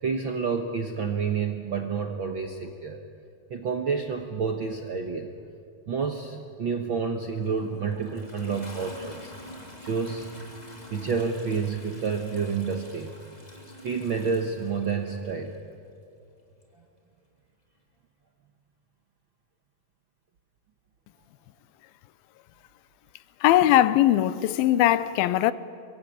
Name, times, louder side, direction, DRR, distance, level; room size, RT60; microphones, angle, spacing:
voice 1, 0.0-3.0 3.5-5.3 5.9-9.3 9.8-10.4 10.9-13.1 13.8-15.5, right 5 dB, 75° right, 1.1 m, -29 dB
Toilet flush, 7.1-15.6 16.6-16.7, equal, 10° left, 2.8 m, -46 dB
voice 2, 23.4-25.5, left 13 dB, 90° left, 2.6 m, -20 dB
24.5 x 23.5 x 9.8 m
omnidirectional pair, 4.1 m